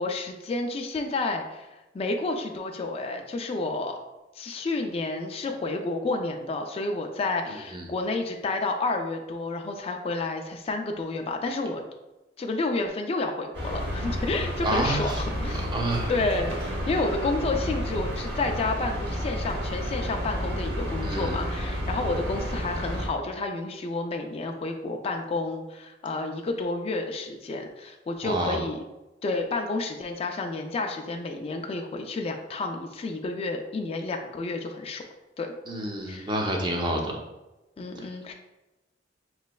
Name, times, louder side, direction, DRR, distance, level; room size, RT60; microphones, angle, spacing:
voice 1, 0.0-1.7 1.9-4.0 4.4-11.8 12.4-15.7 16.1-28.8 29.2-35.0 35.4-35.5 36.1-36.3 37.8-38.3, left 3 dB, 30° left, 3 dB, 0.3 m, -30 dB
sound 1, 13.5-23.1, equal, 65° right, 1.1 m, -31 dB
voice 2, 14.6-15.2 15.7-16.1 21.0-21.4 28.2-28.6 35.7-37.2, right 1 dB, 25° right, 1 dB, 0.6 m, -28 dB
5.0 x 3.1 x 2.2 m, 1.0 s
head